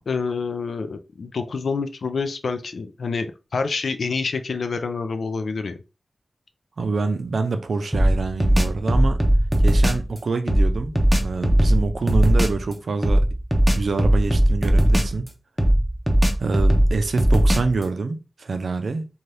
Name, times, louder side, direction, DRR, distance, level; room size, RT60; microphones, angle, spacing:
voice 1, 0.1-5.8, left 4 dB, 90° left, 0.3 m, -27 dB
voice 2, 6.8-9.2 9.6-13.3 13.7-15.3 16.4-19.1, right 4 dB, 80° right, 0.5 m, -26 dB
sound 1, 7.9-10.1 10.5-12.6 13.0-15.3 15.6-17.8, equal, 5° right, 0.6 m, -18 dB
2.7 x 2.3 x 3.2 m
wide cardioid pair, 110°, 0 cm